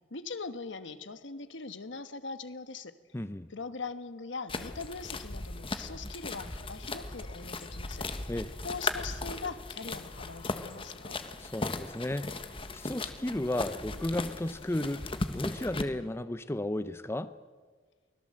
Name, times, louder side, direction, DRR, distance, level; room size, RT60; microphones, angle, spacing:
voice 1, 0.1-2.9 3.5-8.3 8.6-11.2, left 4 dB, 80° left, 11 dB, 1.3 m, -41 dB
voice 2, 3.1-3.5 8.3-8.5 11.4-12.3 12.7-17.3, left 1 dB, 15° left, 13 dB, 0.6 m, -34 dB
sound 1, 4.5-15.8, left 3 dB, 30° left, 1.3 m, -37 dB
24.0 x 17.0 x 7.7 m, 1.5 s
head